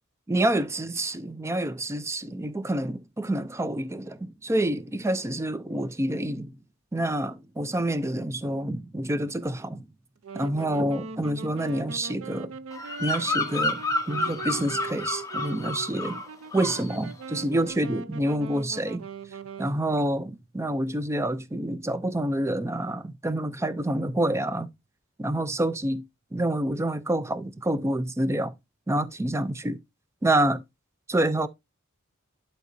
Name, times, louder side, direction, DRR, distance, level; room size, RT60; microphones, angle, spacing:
voice 1, 0.3-6.5 6.9-9.9 10.3-12.5 13.0-13.8 14.1-16.2 16.5-19.1 19.6-24.7 25.2-26.0 26.3-28.5 28.9-29.8 30.2-30.6 31.1-31.5, right 1 dB, 15° right, 0.4 m, -27 dB
Wind instrument woodwind instrument, 10.2-19.8, right 5 dB, 80° right, 0.5 m, -41 dB
Bird vocalization bird call bird song, 12.7-16.3 16.5-16.9, left 2 dB, 15° left, 0.9 m, -30 dB
11.0 x 4.5 x 2.6 m
head